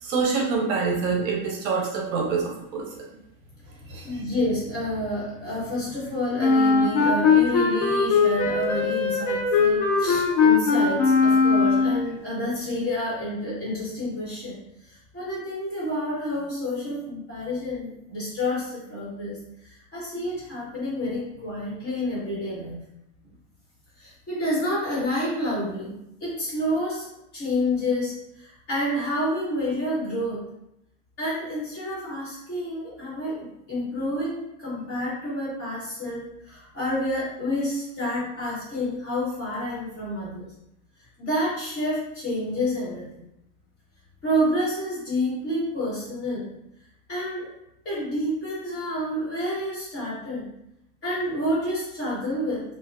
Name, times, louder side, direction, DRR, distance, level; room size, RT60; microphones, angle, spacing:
voice 1, 0.0-2.9 3.9-4.2, right 5 dB, 60° right, -1 dB, 0.8 m, -26 dB
voice 2, 4.0-14.6 14.8-19.4 19.6-22.8 24.0-25.9 26.2-27.1 27.3-30.4 31.2-40.5 41.2-43.2 44.2-46.5 47.1-47.5 47.8-50.4 51.0-52.6, left 1 dB, 20° left, -9 dB, 1.2 m, -29 dB
Wind instrument woodwind instrument, 6.4-12.1, left 5 dB, 40° left, 0.5 m, -20 dB
3.3 x 2.2 x 2.6 m, 0.83 s
supercardioid pair, 170°, 45 cm